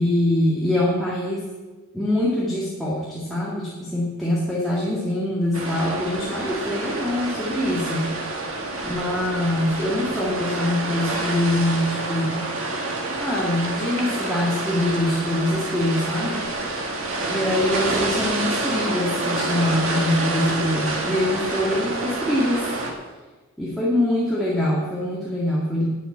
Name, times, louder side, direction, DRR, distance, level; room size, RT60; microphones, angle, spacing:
voice 1, 0.0-1.4 1.9-8.3 8.8-12.5 13.2-16.5 17.3-22.7 23.6-25.8, left 1 dB, ahead, -7 dB, 1.8 m, -24 dB
sound 1, 5.5-22.9, right 2 dB, 65° right, 1.9 m, -28 dB
9.7 x 7.6 x 8.6 m, 1.2 s
head